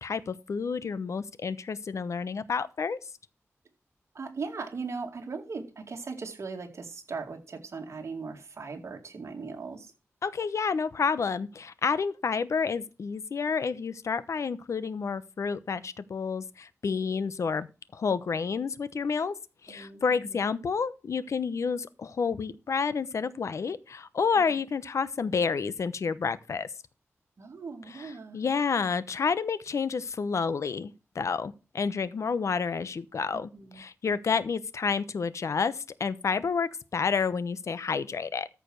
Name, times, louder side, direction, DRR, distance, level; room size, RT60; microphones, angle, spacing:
voice 1, 0.0-3.0 10.2-17.7 17.9-19.3 19.6-26.7 27.9-38.5, left 5 dB, 75° left, 0.9 m, -30 dB
voice 2, 4.1-9.9 16.9-17.1 19.7-20.4 27.4-28.4 33.3-33.8, right 4 dB, 65° right, 2.3 m, -39 dB
14.0 x 5.0 x 6.4 m
wide cardioid pair, 105°, 5 cm